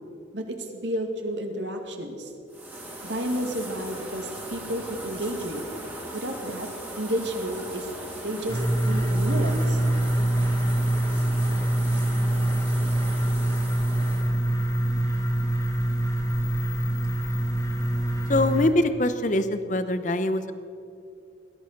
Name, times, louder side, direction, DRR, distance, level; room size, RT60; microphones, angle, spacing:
voice 1, 0.3-2.3 3.0-5.7 6.1-6.7 7.0-7.9 8.2-9.8, equal, 75° right, 4 dB, 2.1 m, -31 dB
sound 1, 2.5-14.3, right 1 dB, 10° right, 2.3 m, -39 dB
sound 2, 8.5-18.7, right 1 dB, 20° left, 2.0 m, -24 dB
voice 2, 18.3-20.5, left 1 dB, 40° left, 11 dB, 0.7 m, -23 dB
18.0 x 12.0 x 6.7 m, 2.5 s
head